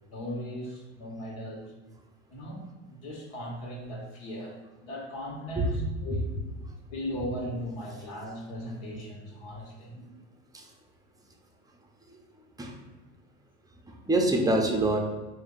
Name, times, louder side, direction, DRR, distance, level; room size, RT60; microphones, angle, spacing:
voice 1, 0.1-1.7 2.3-2.6 2.9-6.3 6.9-10.2, equal, 70° left, -2 dB, 1.4 m, -38 dB
voice 2, 13.9-15.0, right 2 dB, 10° right, 2 dB, 0.6 m, -26 dB
3.4 x 2.7 x 3.9 m, 1.2 s
hypercardioid pair, 85°, 35 cm